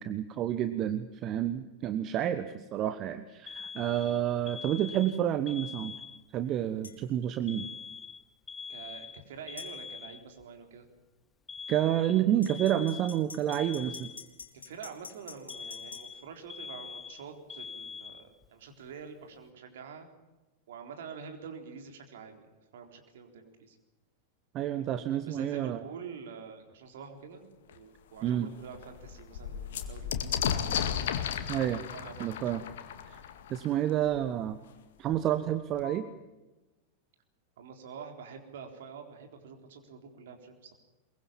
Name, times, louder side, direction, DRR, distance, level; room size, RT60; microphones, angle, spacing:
voice 1, 0.0-5.9 6.3-7.7 11.7-14.1 24.5-25.8 28.2-28.5 31.5-31.8 32.2-32.6 33.1-33.2 33.5-34.6 35.0-36.1, right 11 dB, 35° right, 11 dB, 1.2 m, -29 dB
Alarm, 3.5-6.4 7.5-10.4 11.5-14.5 15.5-18.5, left 5 dB, 15° left, 1.1 m, -43 dB
sound 1, 6.8-7.0 9.6-9.7 12.4-16.1, left 5 dB, 75° left, 3.0 m, -47 dB
voice 2, 8.7-10.9 13.5-13.7 14.5-20.1 20.7-23.8 25.2-31.2 31.9-32.8 37.6-40.7, right 6 dB, 60° right, 4 dB, 4.0 m, -47 dB
sound 2, 27.7-27.8 28.2-28.3 28.6-34.2 35.1-35.2 35.5-36.1, left 8 dB, 60° left, 2.0 m, -34 dB
23.0 x 22.5 x 7.5 m, 1.1 s
figure-of-eight pair, 90°, 0 cm